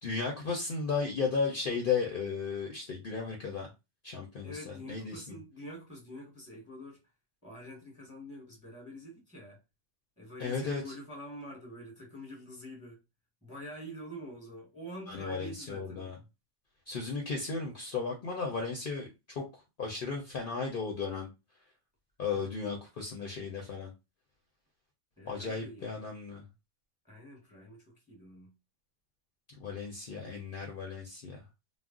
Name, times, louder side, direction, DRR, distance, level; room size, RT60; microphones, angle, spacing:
voice 1, 0.0-3.7 4.0-5.4 10.4-10.8 15.1-16.2 16.9-19.1 19.4-19.5 19.8-21.3 22.2-23.9 25.3-26.4 29.6-31.4, left 5 dB, 55° left, 0.7 m, -35 dB
voice 2, 4.4-7.0 7.4-9.6 10.2-13.0 13.4-16.2 22.3-22.5 25.2-26.1 27.0-28.5, equal, 5° right, 1.0 m, -46 dB
2.4 x 2.0 x 3.6 m
omnidirectional pair, 1.3 m